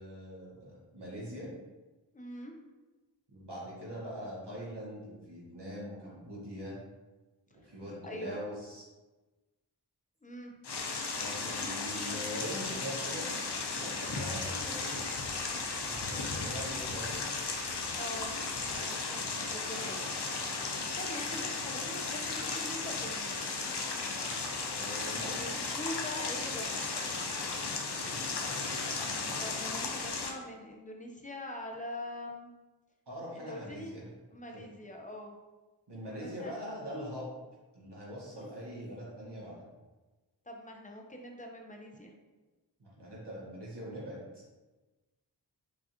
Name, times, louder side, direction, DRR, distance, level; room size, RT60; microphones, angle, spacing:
voice 1, 0.0-1.5 3.3-6.8 7.6-8.9 11.2-13.3 13.7-15.1 15.5-17.3 24.7-25.6 28.0-28.4 33.1-34.1 34.5-34.6 35.9-37.3 37.7-39.6 42.8-44.4, equal, 70° right, -5 dB, 1.3 m, -42 dB
voice 2, 2.1-2.5 8.0-8.4 10.2-10.5 18.0-18.3 18.6-20.1 21.0-23.6 25.3-26.9 29.3-32.5 33.3-34.0 34.3-35.3 36.1-36.5 40.5-42.1, left 1 dB, 20° left, 1 dB, 0.6 m, -43 dB
sound 1, 10.6-30.3, left 4 dB, 70° left, 0.6 m, -35 dB
4.7 x 2.4 x 2.8 m, 1.2 s
wide cardioid pair, 45°, 43 cm